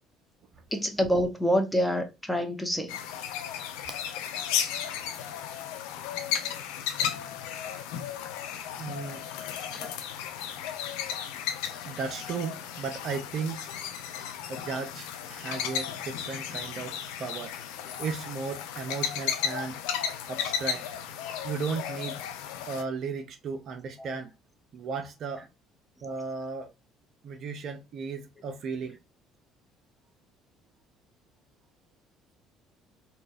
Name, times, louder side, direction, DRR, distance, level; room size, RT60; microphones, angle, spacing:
voice 1, 0.7-3.0, equal, 5° left, 0.8 m, -26 dB
sound 1, 2.9-22.8, left 9 dB, 70° left, 0.4 m, -34 dB
voice 2, 8.8-9.2 11.9-13.6 14.5-17.5 18.0-19.8 20.3-20.8 21.4-22.2 22.7-24.3 24.7-25.4 26.0-26.7 27.2-29.0, right 5 dB, 50° right, 0.5 m, -35 dB
3.8 x 2.2 x 2.3 m
figure-of-eight pair, 55°, 0 cm